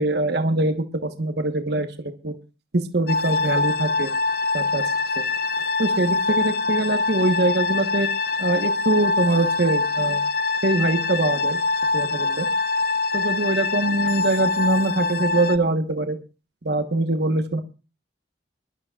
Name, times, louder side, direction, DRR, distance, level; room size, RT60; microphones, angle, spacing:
voice 1, 0.0-2.3 2.7-4.1 4.5-4.8 5.8-8.1 8.4-10.2 10.6-11.6 11.9-12.5 13.1-16.2 16.6-17.6, right 2 dB, 60° right, 8 dB, 1.2 m, -23 dB
sound 1, 3.1-15.6, left 3 dB, 50° left, 0.5 m, -24 dB
23.5 x 12.0 x 2.4 m, 0.32 s
head